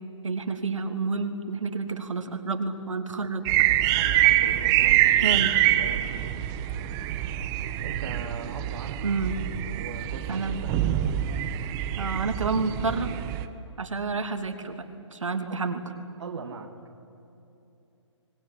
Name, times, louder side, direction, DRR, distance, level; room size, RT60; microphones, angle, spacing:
voice 1, 0.2-3.5 5.2-5.5 9.0-9.4 10.3-10.6 12.0-13.1 13.8-15.8, right 4 dB, 80° right, 6 dB, 3.0 m, -29 dB
sound 1, 3.4-13.4, right 13 dB, 20° right, 1.2 m, -25 dB
voice 2, 3.9-5.4 5.6-6.3 7.8-9.0 9.7-10.7 14.0-14.1 15.5-15.6 16.2-16.7, right 5 dB, 60° right, 3 dB, 2.3 m, -40 dB
26.5 x 20.5 x 9.7 m, 2.8 s
hypercardioid pair, 145°, 16 cm